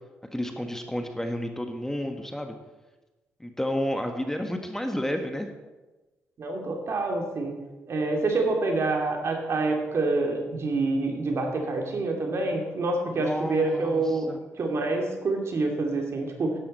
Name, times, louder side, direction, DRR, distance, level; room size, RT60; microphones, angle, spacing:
voice 1, 0.3-2.5 3.4-5.5 13.2-14.4, left 1 dB, 10° left, 5 dB, 1.4 m, -31 dB
voice 2, 6.4-7.5 7.9-16.5, right 3 dB, 55° right, 2 dB, 2.5 m, -27 dB
12.0 x 10.0 x 4.3 m, 1.2 s
supercardioid pair, 60°, 5 cm